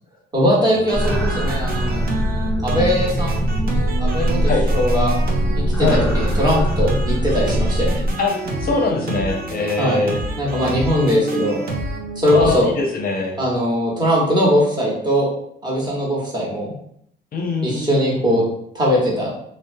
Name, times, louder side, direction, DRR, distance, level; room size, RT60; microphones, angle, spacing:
voice 1, 0.3-2.0 2.6-3.4 4.0-5.1 5.6-8.0 9.8-10.0 10.4-11.6 12.2-12.7 13.4-15.3 15.6-16.7 17.6-18.4 18.7-19.3, equal, 20° right, -5 dB, 1.1 m, -20 dB
sound 1, 0.7-12.6, right 2 dB, 50° right, 0.6 m, -28 dB
sound 2, 0.9-8.1, equal, 5° left, 0.5 m, -21 dB
voice 2, 8.2-10.2 12.3-13.4 17.3-18.4, left 3 dB, 45° left, 1 dB, 0.6 m, -22 dB
2.6 x 2.1 x 2.6 m, 0.69 s
cardioid pair, 90°, 20 cm